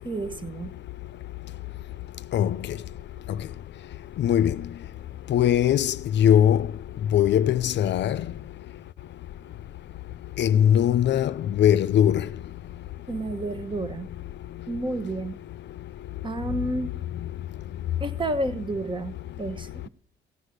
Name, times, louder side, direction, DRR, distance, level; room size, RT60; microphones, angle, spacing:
voice 1, 0.0-0.7 13.1-14.1 14.7-15.4 16.2-16.9 18.0-19.9, right 2 dB, 25° right, 1.2 m, -30 dB
voice 2, 4.2-4.5 5.3-6.6 7.1-8.2 10.4-11.3 11.6-12.2, left 10 dB, 60° left, 0.5 m, -20 dB
16.0 x 8.1 x 6.5 m
cardioid pair, 90°, 20 cm